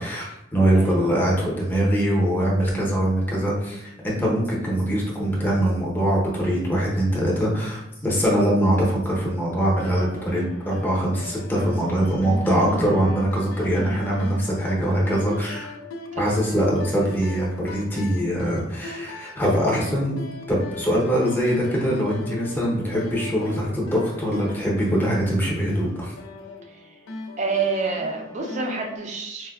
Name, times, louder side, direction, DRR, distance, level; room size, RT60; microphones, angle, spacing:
voice 1, 0.0-15.7 16.2-20.1 20.5-26.1, right 1 dB, 10° left, -5 dB, 0.7 m, -23 dB
voice 2, 0.7-1.1 16.1-16.3 26.7-26.9 27.4-29.5, right 4 dB, 35° right, 2 dB, 0.5 m, -28 dB
sound 1, 9.8-29.0, left 2 dB, 85° left, 0.4 m, -39 dB
4.3 x 2.2 x 2.3 m, 0.86 s
head